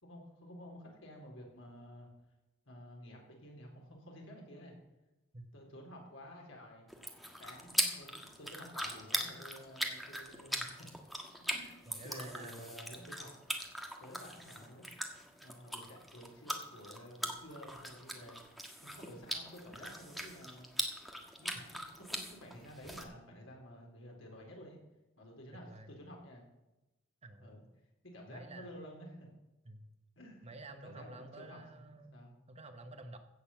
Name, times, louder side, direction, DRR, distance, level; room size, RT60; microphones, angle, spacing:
voice 1, 0.0-2.1 2.7-4.7 5.5-6.9 7.4-10.9 11.3-13.4 14.0-14.9 15.4-18.4 18.8-20.7 21.4-24.8 25.2-26.4 27.4-27.6 28.0-29.3 30.2-31.8 32.1-32.3, equal, 75° left, 0 dB, 4.3 m, -52 dB
sound 1, 6.9-23.0, equal, ahead, 1.5 m, -41 dB
voice 2, 11.9-12.9 25.7-25.9 27.2-27.6 28.3-28.7 29.7-29.9 30.4-33.2, right 2 dB, 30° right, 7 dB, 1.2 m, -50 dB
16.0 x 6.8 x 7.3 m, 0.98 s
head